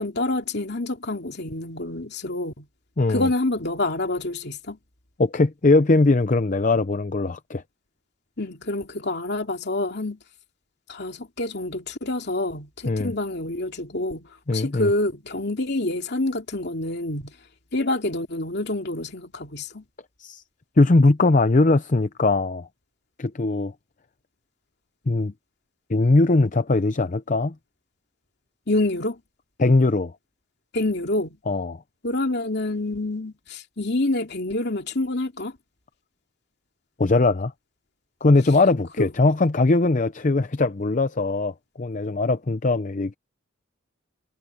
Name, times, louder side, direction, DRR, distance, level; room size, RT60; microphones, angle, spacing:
voice 1, 0.0-2.7 3.1-4.8 8.4-10.2 10.9-17.3 17.7-19.8 28.7-29.2 30.7-31.4 32.0-35.5 39.0-39.1, left 2 dB, 55° left, 2.8 m, -27 dB
voice 2, 5.2-7.6 12.9-13.1 14.5-14.9 20.2-20.4 20.8-22.7 23.2-23.7 25.1-25.3 25.9-27.5 29.6-30.1 31.5-31.8 37.0-37.5 38.2-43.1, left 2 dB, 40° left, 0.6 m, -20 dB
head